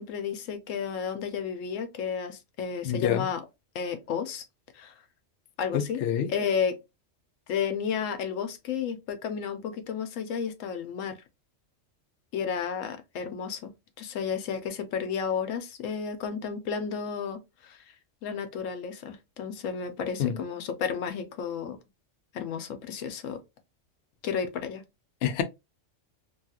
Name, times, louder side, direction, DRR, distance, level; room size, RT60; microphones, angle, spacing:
voice 1, 0.0-3.4 3.7-4.4 4.7-4.9 5.6-6.0 6.3-6.8 7.5-11.2 12.3-17.8 18.2-21.8 22.3-23.4 24.2-24.8, left 7 dB, 85° left, 1.0 m, -32 dB
voice 2, 2.8-3.3 5.7-6.3 20.2-20.4 25.2-25.4, left 9 dB, 65° left, 0.7 m, -27 dB
3.0 x 2.3 x 2.8 m
omnidirectional pair, 1.3 m